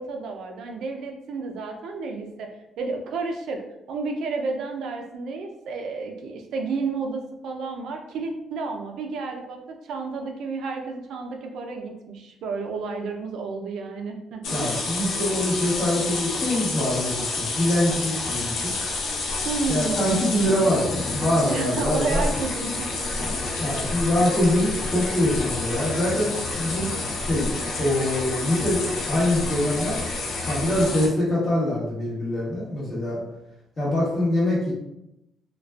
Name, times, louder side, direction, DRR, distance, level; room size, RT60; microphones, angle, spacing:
voice 1, 0.0-2.5 2.8-3.6 3.9-14.8 19.4-20.2 21.5-23.1 23.4-23.7, right 4 dB, 70° right, 3 dB, 0.4 m, -31 dB
sound 1, 14.4-31.1, left 3 dB, 90° left, 0.5 m, -29 dB
voice 2, 14.5-18.7 19.7-22.2 23.2-30.0 30.5-33.2 33.8-34.7, left 1 dB, 30° left, -8 dB, 1.3 m, -24 dB
2.4 x 2.2 x 2.2 m, 0.88 s
cardioid pair, 140°, 0 cm